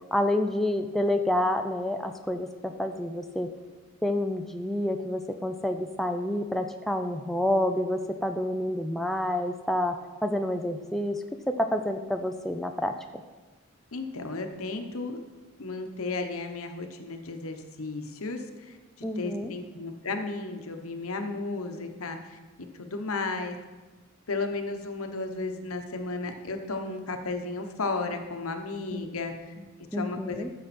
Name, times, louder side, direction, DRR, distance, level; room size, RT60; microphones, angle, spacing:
voice 1, 0.1-3.5 4.0-12.9 19.0-19.5 28.9-29.1 29.9-30.5, left 1 dB, ahead, 4 dB, 0.4 m, -28 dB
voice 2, 13.9-15.2 15.6-18.8 19.2-22.4 22.8-23.6 24.3-29.5 29.9-30.4, left 3 dB, 75° left, 5 dB, 1.0 m, -34 dB
14.0 x 6.5 x 4.3 m, 1.3 s
head